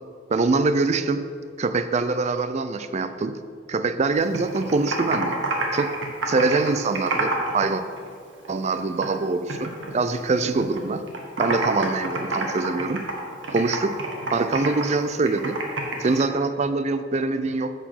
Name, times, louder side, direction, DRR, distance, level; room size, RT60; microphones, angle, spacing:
voice 1, 0.3-1.3 1.6-3.4 3.7-5.3 5.7-5.9 6.3-7.8 8.5-11.0 11.4-13.0 13.5-14.0 14.3-15.6 16.0-17.7, right 3 dB, 35° right, 11 dB, 0.4 m, -24 dB
Computer keyboard, 4.1-7.7 8.0-9.2 9.5-10.8 11.1-16.2, right 2 dB, 80° right, 1.5 m, -28 dB
8.0 x 6.0 x 6.0 m, 2.2 s
head